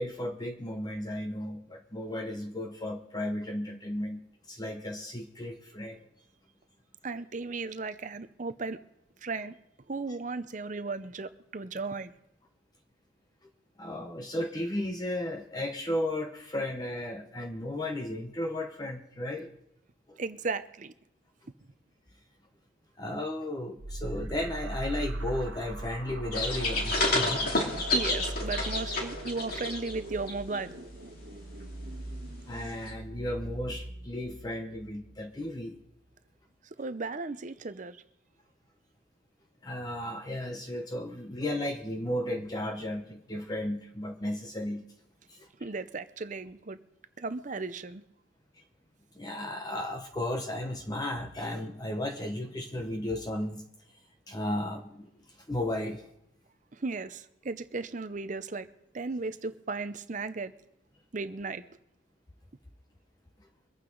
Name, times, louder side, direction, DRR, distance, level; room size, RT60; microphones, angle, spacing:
voice 1, 0.0-6.0 13.8-19.5 20.1-20.2 23.0-27.5 32.5-35.8 39.6-44.8 45.3-45.5 49.1-53.6 54.3-56.1, left 1 dB, 20° left, 4 dB, 0.8 m, -34 dB
voice 2, 7.0-8.8 9.2-9.5 9.9-12.1 20.2-20.9 27.8-30.7 36.8-38.0 45.6-46.8 47.2-48.0 56.7-58.7 58.9-60.5 61.1-61.6, right 3 dB, 40° right, 12 dB, 0.6 m, -35 dB
sound 1, 23.8-35.1, right 1 dB, 70° right, 1.3 m, -39 dB
sound 2, 26.3-30.0 30.3-30.6 32.9-33.0, left 2 dB, 45° left, 2.7 m, -29 dB
23.5 x 8.9 x 3.9 m, 0.79 s
head